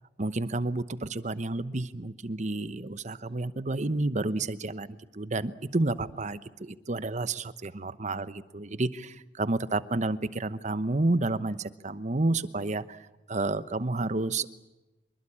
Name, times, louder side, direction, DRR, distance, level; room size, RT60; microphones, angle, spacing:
voice 1, 0.2-14.5, right 2 dB, 45° right, 14 dB, 1.0 m, -30 dB
25.5 x 22.5 x 8.6 m, 1.0 s
head